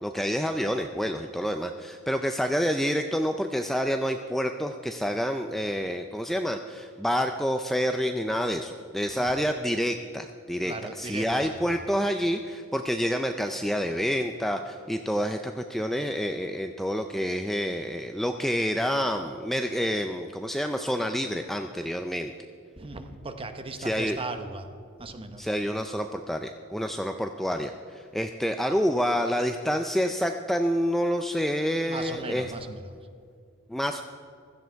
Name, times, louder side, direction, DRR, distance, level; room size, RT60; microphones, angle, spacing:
voice 1, 0.0-22.3 23.8-24.2 25.4-32.5 33.7-34.0, equal, ahead, 5 dB, 0.4 m, -28 dB
voice 2, 9.1-9.4 10.6-11.5 22.8-24.7 25.0-25.5 31.8-33.0, right 2 dB, 25° right, 8 dB, 0.9 m, -37 dB
16.0 x 13.0 x 4.6 m, 2.3 s
head